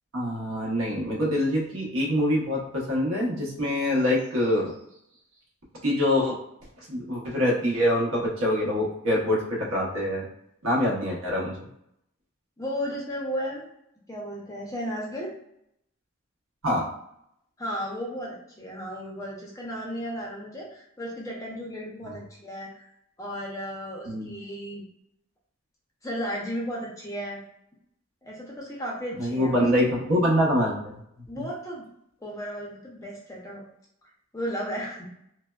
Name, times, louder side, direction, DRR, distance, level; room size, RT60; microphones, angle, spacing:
voice 1, 0.1-4.7 5.8-6.4 6.9-10.2 10.6-11.5 16.6-16.8 22.0-22.2 24.1-24.3 29.2-31.0, left 1 dB, 70° right, -3 dB, 0.8 m, -25 dB
voice 2, 12.6-13.6 14.1-15.3 17.6-22.8 23.2-24.8 26.0-27.4 28.2-29.7 31.3-31.8 32.2-33.6 34.3-35.0, equal, 15° left, -3 dB, 0.4 m, -34 dB
3.3 x 2.0 x 2.2 m, 0.76 s
head